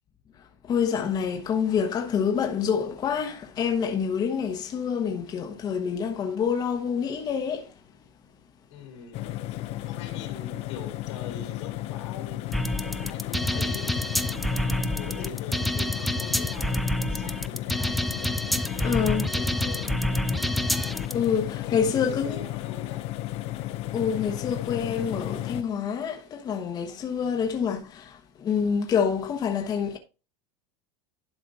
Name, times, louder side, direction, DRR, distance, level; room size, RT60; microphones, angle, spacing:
voice 1, 0.6-7.8 18.8-19.3 20.8-22.4 23.9-30.0, left 7 dB, 30° left, 1.1 m, -27 dB
voice 2, 8.7-12.7 13.1-14.1 14.4-18.2 18.6-20.1 21.6-23.1 27.2-27.6, left 6 dB, 85° left, 3.3 m, -43 dB
sound 1, 9.1-25.6, left 15 dB, 45° left, 0.6 m, -34 dB
sound 2, 12.5-21.1, equal, ahead, 0.4 m, -28 dB
11.5 x 5.0 x 4.1 m
supercardioid pair, 140°, 15 cm